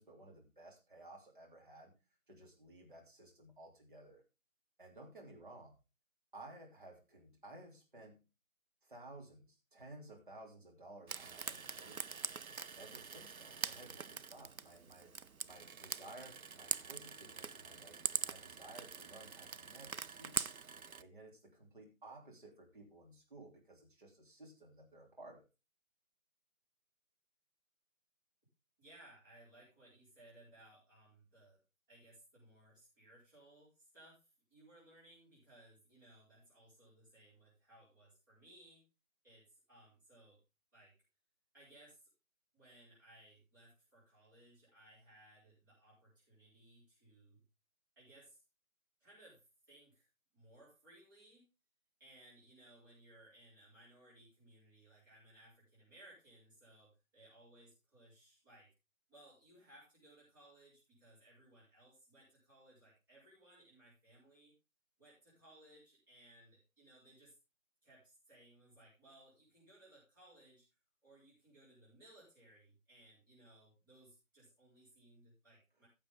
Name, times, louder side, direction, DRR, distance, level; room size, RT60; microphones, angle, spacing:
voice 1, 0.0-1.9 2.3-4.2 4.8-5.7 6.3-8.2 8.8-12.2 12.8-15.1 15.4-20.5 21.0-25.5, right 2 dB, 35° right, 0 dB, 3.3 m, -56 dB
Frying (food), 11.1-21.0, right 5 dB, 85° right, 0.7 m, -43 dB
voice 2, 28.8-31.6 31.9-38.8 39.2-40.4 40.7-40.9 41.5-42.1 42.5-47.4 47.9-48.4 49.0-50.1 50.3-51.4 52.0-58.7 59.1-64.5 65.0-67.4 67.8-70.7 71.0-75.9, right 1 dB, 15° right, -10 dB, 5.0 m, -63 dB
15.0 x 7.4 x 3.7 m, 0.28 s
figure-of-eight pair, 165°, 41 cm